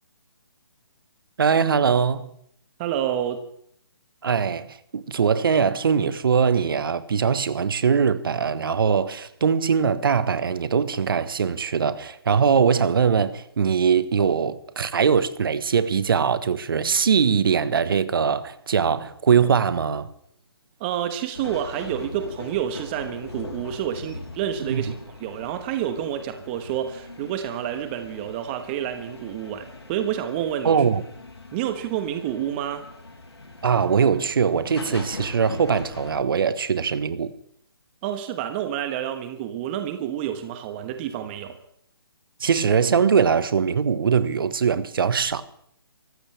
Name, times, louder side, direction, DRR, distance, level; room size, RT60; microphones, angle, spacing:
voice 1, 1.4-2.3 4.2-20.1 24.6-24.8 30.6-31.0 33.6-37.3 42.4-45.4, right 6 dB, 60° right, 1.3 m, -21 dB
voice 2, 2.8-3.4 20.8-30.8 31.5-32.8 38.0-41.6, right 10 dB, 25° right, 1.3 m, -29 dB
sound 1, 21.3-36.2, left 2 dB, 85° left, 3.6 m, -41 dB
24.5 x 14.5 x 3.4 m
figure-of-eight pair, 145°, 13 cm